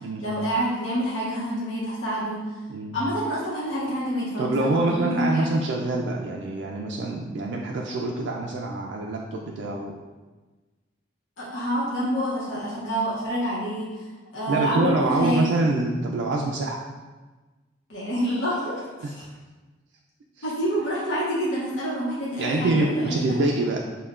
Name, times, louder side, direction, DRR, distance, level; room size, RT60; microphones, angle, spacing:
voice 1, 0.2-2.5 2.9-5.5 11.4-14.1 14.3-15.5 17.9-19.1 20.4-23.3, equal, 75° left, -7 dB, 0.8 m, -27 dB
voice 2, 4.4-9.9 14.5-16.8 19.0-19.1 20.4-20.5 22.4-23.8, right 2 dB, 65° right, -1 dB, 0.3 m, -25 dB
5.4 x 2.2 x 2.4 m, 1.3 s
head